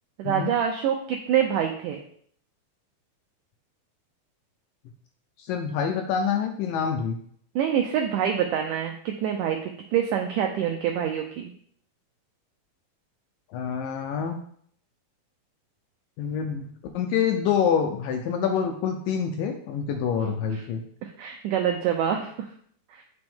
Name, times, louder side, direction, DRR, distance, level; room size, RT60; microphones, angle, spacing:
voice 1, 0.2-2.0 7.6-11.5 20.5-20.6 21.0-22.3 22.9-23.0, right 9 dB, 80° right, 3 dB, 1.9 m, -26 dB
voice 2, 5.4-7.2 13.5-14.4 16.2-20.8, left 7 dB, 80° left, 4 dB, 2.1 m, -26 dB
8.1 x 5.2 x 3.5 m, 0.62 s
omnidirectional pair, 4.3 m